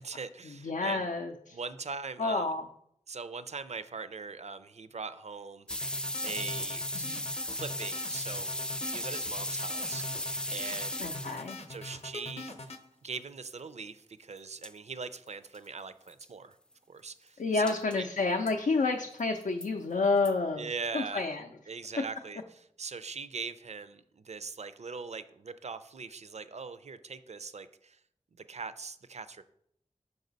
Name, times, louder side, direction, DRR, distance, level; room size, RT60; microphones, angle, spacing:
voice 1, 0.0-1.1 1.5-2.5 3.1-5.9 6.2-7.0 7.5-8.5 8.9-10.0 10.5-11.0 11.7-12.7 13.0-16.6 16.9-18.1 20.6-21.3 21.7-28.0 28.5-29.4, right 4 dB, 60° right, 13 dB, 0.4 m, -41 dB
voice 2, 0.6-1.6 2.2-2.6 6.9-7.2 11.0-11.6 17.4-20.7 20.9-21.5, left 3 dB, 90° left, 3 dB, 0.5 m, -29 dB
sound 1, 5.7-12.8, left 2 dB, 55° left, 0.7 m, -43 dB
sound 2, 5.7-11.6 14.4-14.5 14.6-14.7 15.3-15.4 15.5-15.6 16.1-16.3 17.7-18.0 18.5-18.6 19.2-19.7 20.3-20.4, left 1 dB, 5° left, 0.3 m, -36 dB
5.4 x 4.8 x 3.9 m, 0.72 s
wide cardioid pair, 45°, 13 cm